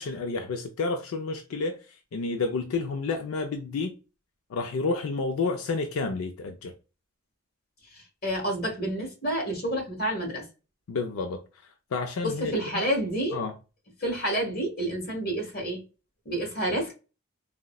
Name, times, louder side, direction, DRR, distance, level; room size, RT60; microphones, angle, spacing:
voice 1, 0.0-4.0 4.5-6.7 10.9-12.6 13.3-13.6, left 3 dB, 80° left, 0.4 m, -30 dB
voice 2, 7.9-10.4 12.2-13.4 14.0-15.8 16.2-16.9, right 1 dB, 45° left, 1.3 m, -29 dB
3.7 x 2.1 x 2.2 m
head